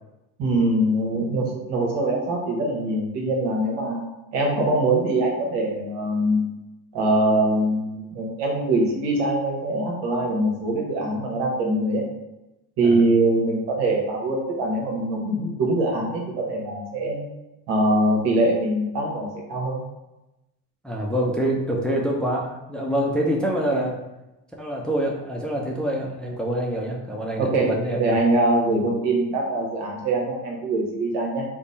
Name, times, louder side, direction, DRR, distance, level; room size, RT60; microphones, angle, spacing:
voice 1, 0.4-4.0 4.3-6.5 6.9-12.0 12.8-17.2 17.7-19.8 23.7-23.8 27.4-31.4, right 1 dB, 65° right, -1 dB, 1.3 m, -23 dB
voice 2, 20.8-23.9 24.6-28.2, right 1 dB, ahead, -2 dB, 0.6 m, -26 dB
3.5 x 2.1 x 4.0 m, 0.98 s
hypercardioid pair, 65°, 44 cm